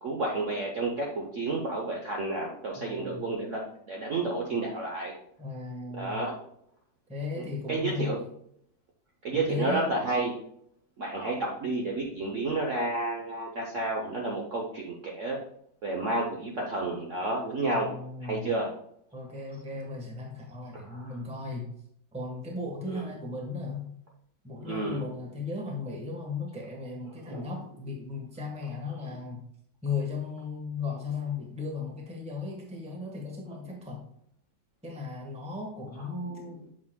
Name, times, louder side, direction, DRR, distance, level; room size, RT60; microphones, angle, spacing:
voice 1, 0.0-3.6 3.9-5.1 6.0-6.4 7.4-8.2 9.2-10.3 11.0-15.4 15.8-17.9 18.2-18.7 20.7-21.1 22.9-23.0 24.6-25.0 27.1-27.5, right 2 dB, 55° right, -1 dB, 1.0 m, -31 dB
voice 2, 2.8-3.2 5.4-6.2 7.1-8.2 9.3-9.9 17.6-18.5 19.1-21.7 22.1-23.9 24.4-29.4 29.8-34.0 34.8-36.6, left 4 dB, 5° right, 0 dB, 1.0 m, -36 dB
7.6 x 5.9 x 2.2 m, 0.69 s
omnidirectional pair, 2.1 m